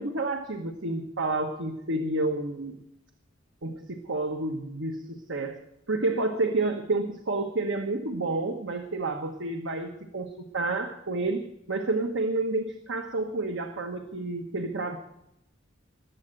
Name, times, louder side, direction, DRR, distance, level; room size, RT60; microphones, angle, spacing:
voice 1, 0.0-2.8 3.6-15.0, right 2 dB, 80° right, 5 dB, 1.2 m, -30 dB
19.5 x 8.0 x 7.7 m, 0.82 s
head